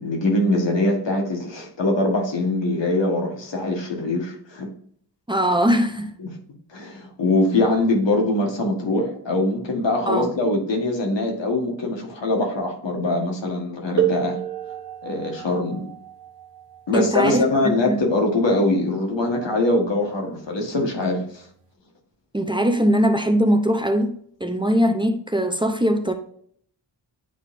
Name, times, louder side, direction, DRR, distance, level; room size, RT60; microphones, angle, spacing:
voice 1, 0.0-4.7 6.2-6.4 6.7-14.4 15.0-15.8 16.9-21.5, left 2 dB, 80° left, 1.6 m, -23 dB
voice 2, 5.3-6.1 10.1-10.3 16.9-17.4 17.9-18.1 22.3-26.1, equal, 10° right, 0.7 m, -21 dB
sound 1, 14.0-19.4 20.5-20.6 21.4-21.6, right 11 dB, 75° right, 1.0 m, -30 dB
9.2 x 4.0 x 2.7 m
cardioid pair, 60°, 43 cm